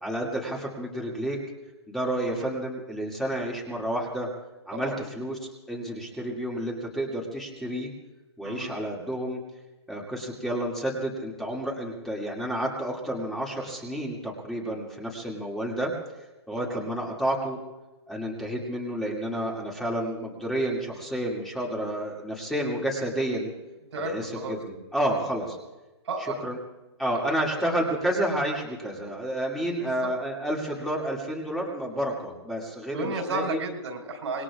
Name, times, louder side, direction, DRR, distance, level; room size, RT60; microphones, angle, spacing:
voice 1, 0.0-1.4 1.9-4.3 4.7-5.4 5.7-7.9 8.4-9.4 9.9-15.9 16.5-17.6 18.1-23.5 24.0-24.3 24.6-25.6 26.4-26.6 27.0-33.6, right 1 dB, ahead, -3 dB, 2.4 m, -30 dB
voice 2, 4.7-5.0 8.4-8.7 16.6-16.8 23.9-24.6 26.0-26.4 27.1-27.2 27.5-27.7 29.8-30.1 32.9-34.4, right 2 dB, 75° right, 2 dB, 4.4 m, -33 dB
25.5 x 21.0 x 2.5 m, 1.1 s
hypercardioid pair, 145°, 15 cm